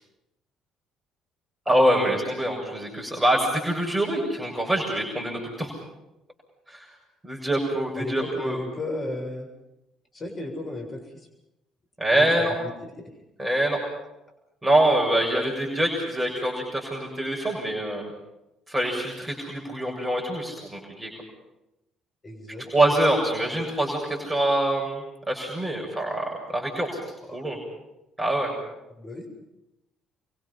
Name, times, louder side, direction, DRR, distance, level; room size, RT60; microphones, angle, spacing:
voice 1, 1.7-5.7 6.7-6.8 7.2-8.6 12.0-12.5 13.4-13.8 14.6-18.1 18.7-21.1 22.7-27.0 27.3-27.6 28.2-28.5, right 1 dB, 15° right, -1 dB, 7.0 m, -25 dB
voice 2, 8.0-9.5 10.1-11.2 12.1-12.6 12.8-13.1 22.2-23.0 27.3-27.4 28.9-29.3, left 2 dB, 35° left, 2 dB, 7.7 m, -35 dB
28.0 x 24.0 x 5.8 m, 0.90 s
figure-of-eight pair, 50°, 0 cm